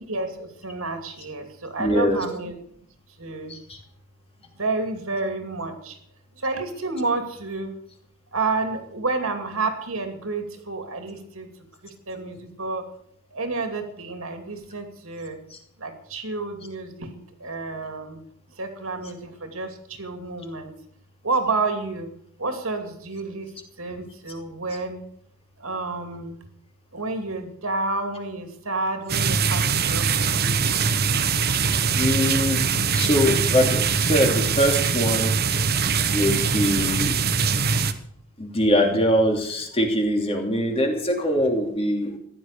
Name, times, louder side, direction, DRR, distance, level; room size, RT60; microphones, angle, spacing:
voice 1, 0.1-2.5 3.2-3.6 4.6-6.0 6.4-7.8 8.3-11.5 12.1-12.8 13.3-15.4 15.8-17.1 17.4-18.2 18.6-20.7 21.2-22.1 22.4-23.5 23.8-25.0 25.6-26.4 26.9-30.5 36.3-36.4 38.9-39.0, right 3 dB, 65° right, 6 dB, 2.7 m, -30 dB
voice 2, 1.8-2.2 3.5-3.8 15.5-15.6 32.0-32.6 32.9-35.3 36.1-37.1 38.4-42.1, equal, 25° left, 2 dB, 2.9 m, -22 dB
sound 1, 29.1-37.9, right 5 dB, 45° right, 1.1 m, -22 dB
15.0 x 11.0 x 6.7 m, 0.68 s
head